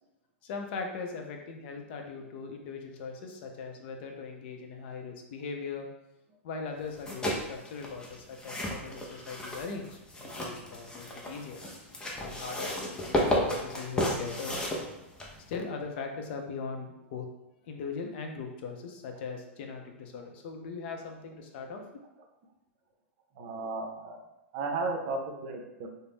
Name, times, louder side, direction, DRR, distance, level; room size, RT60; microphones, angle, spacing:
voice 1, 0.4-5.9 6.4-11.6 12.2-14.8 15.5-17.3 17.7-21.8, left 4 dB, 55° left, 3 dB, 0.5 m, -40 dB
sound 1, 6.9-15.5, left 1 dB, 10° left, 0.6 m, -33 dB
voice 2, 23.3-24.2 24.5-25.9, right 3 dB, 50° right, 2 dB, 0.6 m, -34 dB
2.6 x 2.0 x 3.4 m, 0.89 s
hypercardioid pair, 115°, 7 cm